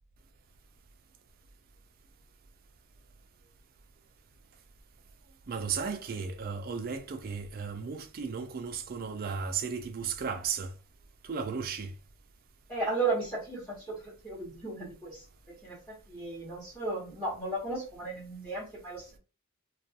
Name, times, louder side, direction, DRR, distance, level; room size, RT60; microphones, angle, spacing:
voice 1, 5.5-10.7 11.2-11.9, right 6 dB, 40° right, 0.3 m, -35 dB
voice 2, 12.7-15.2 15.6-15.8 16.1-19.1, right 3 dB, 5° left, 0.8 m, -34 dB
2.3 x 2.3 x 2.7 m
head